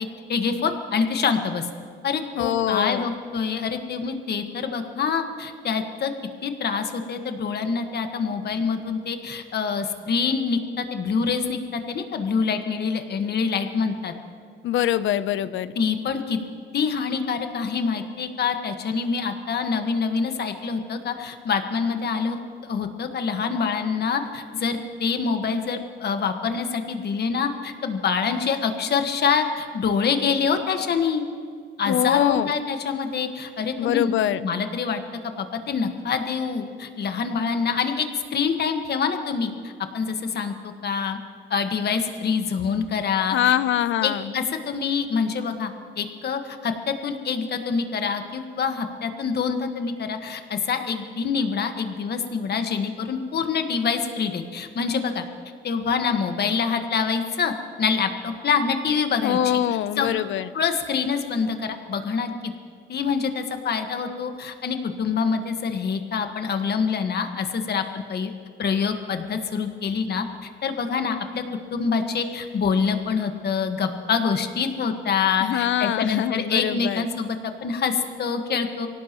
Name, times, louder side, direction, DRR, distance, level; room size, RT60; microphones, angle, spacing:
voice 1, 0.0-1.7 2.0-6.1 6.4-14.1 15.7-16.4 16.7-22.4 22.6-31.2 31.8-34.1 34.4-41.2 41.5-43.6 44.0-55.2 55.6-59.4 60.0-60.2 60.5-62.5 62.9-68.3 68.6-71.4 71.7-78.9, left 6 dB, 55° left, 6 dB, 1.5 m, -26 dB
voice 2, 2.4-3.0 14.6-15.7 31.9-32.5 33.8-34.4 43.3-44.3 59.2-60.5 75.4-77.0, left 11 dB, 75° left, 15 dB, 0.6 m, -23 dB
24.0 x 17.5 x 3.0 m, 2.1 s
cardioid pair, 90°, 20 cm